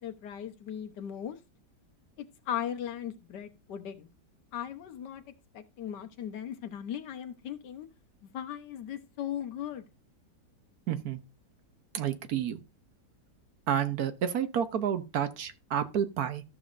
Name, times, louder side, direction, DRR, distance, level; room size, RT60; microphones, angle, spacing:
voice 1, 0.0-1.4 2.4-4.1 4.5-5.2 5.5-7.9 8.2-9.8, left 9 dB, 75° left, 1.6 m, -38 dB
voice 2, 10.9-11.2 11.9-12.6 13.7-16.4, right 9 dB, 65° right, 1.3 m, -30 dB
13.5 x 6.9 x 2.5 m
omnidirectional pair, 1.9 m